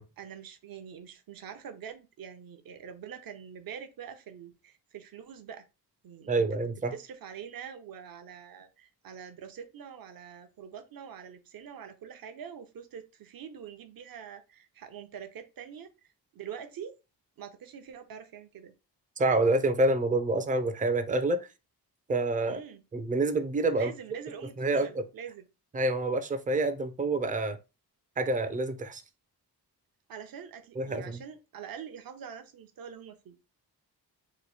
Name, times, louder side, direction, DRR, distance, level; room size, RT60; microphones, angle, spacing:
voice 1, 0.2-5.6 6.0-6.5 6.9-15.9 16.3-17.0 17.4-18.7 22.4-22.8 23.7-25.5 30.1-33.4, right 8 dB, 60° right, 0.7 m, -44 dB
voice 2, 6.3-6.9 19.2-21.4 22.1-22.6 22.9-23.9 24.6-24.9 25.7-27.6 28.2-29.0 30.8-31.2, right 2 dB, 20° right, 0.4 m, -27 dB
3.0 x 2.6 x 4.1 m
wide cardioid pair, 135°, 40 cm